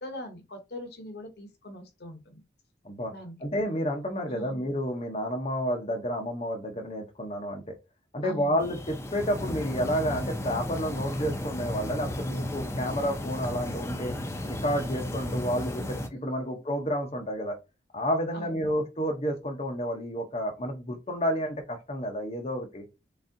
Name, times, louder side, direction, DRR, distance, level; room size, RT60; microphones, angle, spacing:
voice 1, 0.0-2.4 3.1-3.4 4.3-4.6 8.2-8.6 16.1-16.6 18.3-18.8, left 1 dB, 70° left, 0.8 m, -42 dB
voice 2, 3.4-7.7 8.1-14.1 14.4-17.6 17.9-22.8, equal, 35° left, 0.7 m, -30 dB
sound 1, 8.6-16.1, left 1 dB, 15° left, 0.4 m, -34 dB
4.0 x 3.5 x 2.6 m
head